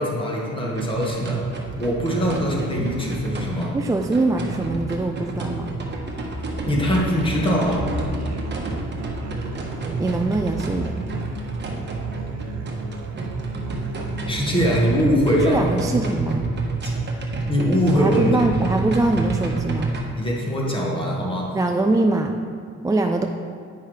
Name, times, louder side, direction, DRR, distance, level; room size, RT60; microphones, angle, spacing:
voice 1, 0.0-1.5 1.8-3.8 6.6-7.9 14.3-15.6 16.8-16.9 17.4-18.3 20.1-21.5, equal, 15° left, -2 dB, 1.6 m, -22 dB
sound 1, 0.7-20.0, right 2 dB, 35° right, 1.2 m, -29 dB
voice 2, 3.7-5.7 10.0-11.0 15.4-16.5 17.9-19.9 21.5-22.3 22.8-23.3, right 2 dB, 10° right, 3 dB, 0.3 m, -22 dB
Musical instrument, 7.0-15.0, right 4 dB, 65° right, 0.8 m, -37 dB
9.6 x 5.6 x 3.2 m, 2.2 s
cardioid pair, 90°, 30 cm